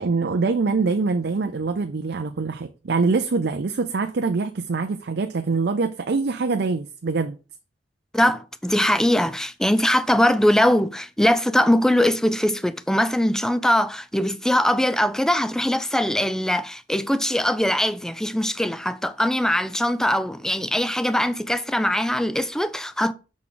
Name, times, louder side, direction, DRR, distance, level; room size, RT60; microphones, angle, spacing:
voice 1, 0.0-7.4, right 4 dB, 60° right, 0.5 m, -24 dB
voice 2, 8.1-23.1, left 1 dB, 5° left, 0.4 m, -21 dB
6.1 x 5.9 x 3.8 m
head